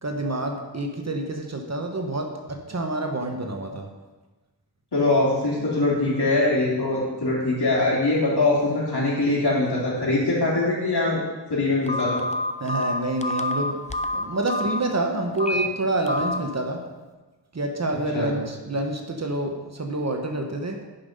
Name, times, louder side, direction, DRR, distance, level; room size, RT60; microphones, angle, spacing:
voice 1, 0.0-3.9 12.6-13.8 14.1-16.8 17.5-20.8, right 2 dB, 35° right, 3 dB, 1.1 m, -27 dB
voice 2, 4.9-11.2 11.5-12.2 18.1-18.3, left 2 dB, 60° left, -5 dB, 3.3 m, -22 dB
Telephone, 11.9-14.8 15.4-15.7 16.1-16.4, left 1 dB, 15° left, 0.4 m, -27 dB
10.5 x 5.6 x 5.3 m, 1.2 s
wide cardioid pair, 115°, 43 cm